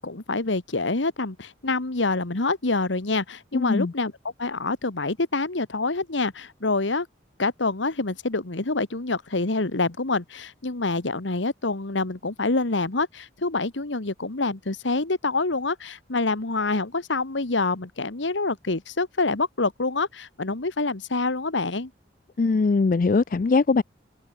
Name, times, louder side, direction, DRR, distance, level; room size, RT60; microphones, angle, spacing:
voice 1, 0.0-4.1 4.4-7.1 7.4-21.9, left 3 dB, 80° left, 1.6 m, -26 dB
voice 2, 3.5-3.9 22.4-23.8, left 4 dB, 45° left, 0.4 m, -21 dB
head